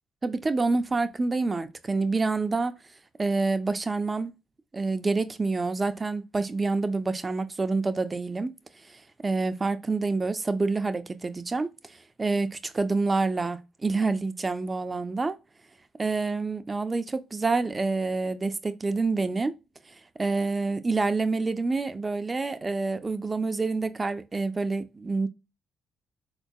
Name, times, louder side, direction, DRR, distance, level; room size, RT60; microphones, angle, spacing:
voice 1, 0.2-2.7 3.2-4.3 4.7-8.5 8.9-11.7 12.2-15.4 16.0-19.6 20.2-25.3, right 3 dB, 25° right, 0.5 m, -27 dB
3.8 x 2.6 x 2.2 m
supercardioid pair, 75°, 0 cm